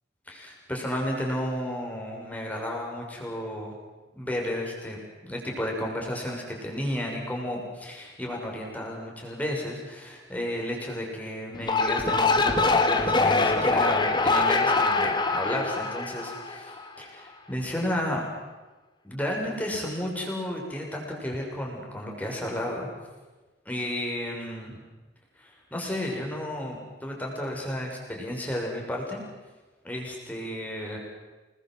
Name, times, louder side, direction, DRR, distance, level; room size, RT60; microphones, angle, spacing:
voice 1, 0.3-3.7 4.1-18.2 19.0-22.9 23.6-24.8 25.4-29.2 29.8-31.0, left 1 dB, 10° left, -1 dB, 6.5 m, -32 dB
sound 1, 11.5-16.9, left 3 dB, 25° left, 2.3 m, -23 dB
28.5 x 20.5 x 8.0 m, 1.2 s
head